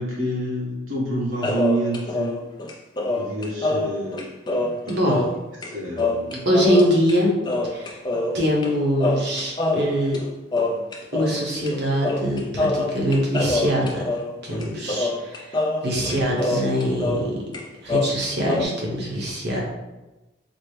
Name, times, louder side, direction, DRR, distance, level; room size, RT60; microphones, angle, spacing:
voice 1, 0.0-2.4 3.1-4.3 4.8-4.9 5.6-6.5, right 1 dB, 85° right, -5 dB, 1.4 m, -28 dB
sound 1, 1.4-5.4 5.6-5.7 6.0-7.2 7.4-8.7 9.0-11.4 11.7-11.8 12.0-17.3 17.5-18.6, left 2 dB, 20° left, 0.3 m, -25 dB
voice 2, 4.9-5.3 6.4-7.3 7.6-8.0 8.3-10.2 11.1-14.0 14.4-15.6 15.8-17.3 17.8-19.6, equal, 55° right, -3 dB, 0.9 m, -23 dB
4.1 x 2.1 x 3.2 m, 1.1 s
head